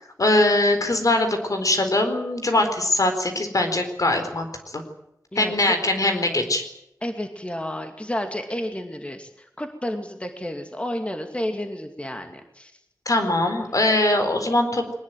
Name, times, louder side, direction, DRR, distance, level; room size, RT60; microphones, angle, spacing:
voice 1, 0.2-4.5 4.7-4.8 5.4-6.6 13.1-14.9, left 2 dB, 60° left, 6 dB, 4.3 m, -21 dB
voice 2, 5.3-5.7 6.0-6.4 7.0-9.3 9.6-12.7, left 1 dB, 20° left, 5 dB, 2.5 m, -31 dB
22.5 x 19.5 x 9.3 m, 0.80 s
wide cardioid pair, 75°, 7 cm